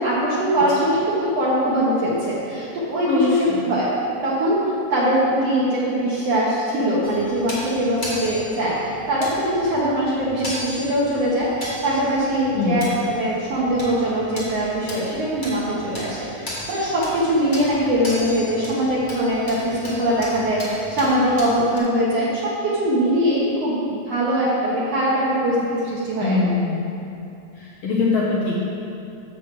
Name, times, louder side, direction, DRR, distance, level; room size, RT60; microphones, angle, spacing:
voice 1, 0.0-3.9 4.2-4.6 4.9-26.4, equal, 60° right, -7 dB, 1.9 m, -22 dB
voice 2, 3.1-3.7 12.5-12.8 26.2-26.8 27.6-28.6, left 4 dB, 85° left, -4 dB, 1.3 m, -22 dB
sound 1, 7.0-21.8, left 1 dB, 30° left, 0.8 m, -36 dB
7.5 x 6.6 x 6.0 m, 2.7 s
omnidirectional pair, 3.8 m